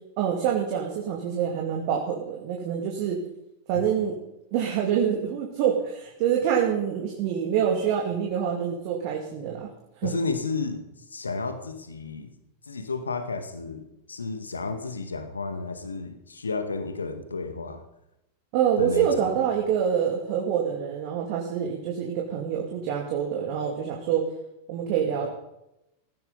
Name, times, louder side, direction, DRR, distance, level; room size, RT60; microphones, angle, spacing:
voice 1, 0.2-3.2 3.7-4.2 4.5-9.7 9.9-10.1 18.5-24.3 24.7-25.3, right 8 dB, 45° right, 0 dB, 2.5 m, -26 dB
voice 2, 10.0-10.8 11.1-12.3 12.6-17.8 18.8-19.4, left 4 dB, 75° left, 7 dB, 2.0 m, -32 dB
19.0 x 15.5 x 4.1 m, 0.86 s
figure-of-eight pair, 90°, 0 cm